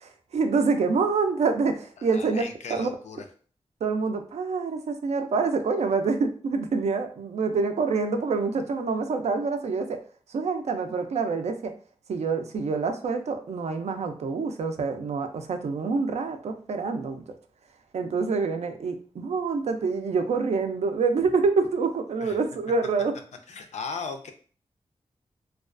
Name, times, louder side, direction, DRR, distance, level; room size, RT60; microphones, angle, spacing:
voice 1, 0.0-2.4 2.7-2.9 3.8-10.0 10.3-11.7 12.1-17.2 17.9-23.1, right 4 dB, 75° right, 6 dB, 0.4 m, -26 dB
voice 2, 2.0-3.2 22.2-22.4 23.5-24.3, left 5 dB, 85° left, 6 dB, 0.4 m, -37 dB
2.3 x 2.2 x 2.4 m, 0.42 s
wide cardioid pair, 85°, 11 cm